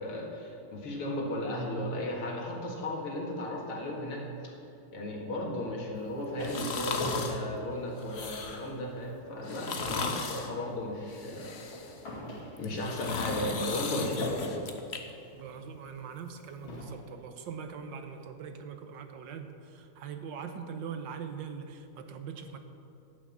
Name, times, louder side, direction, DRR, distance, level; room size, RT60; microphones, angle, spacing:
voice 1, 0.0-4.5 4.9-11.5 12.6-14.7, left 1 dB, 85° left, -1 dB, 2.9 m, -35 dB
sound 1, 5.8-8.5 8.9-9.1 9.4-13.0 14.2-15.0 15.8-15.9 16.6-17.2, equal, 65° left, 3.1 m, -40 dB
sound 2, 6.4-7.4 8.0-8.7 9.4-10.5 11.1-12.0 12.6-15.0 15.4-15.5, left 4 dB, 50° left, 0.8 m, -36 dB
voice 2, 15.3-22.6, right 6 dB, 65° right, 7 dB, 1.5 m, -42 dB
11.0 x 8.9 x 7.2 m, 2.8 s
omnidirectional pair, 2.4 m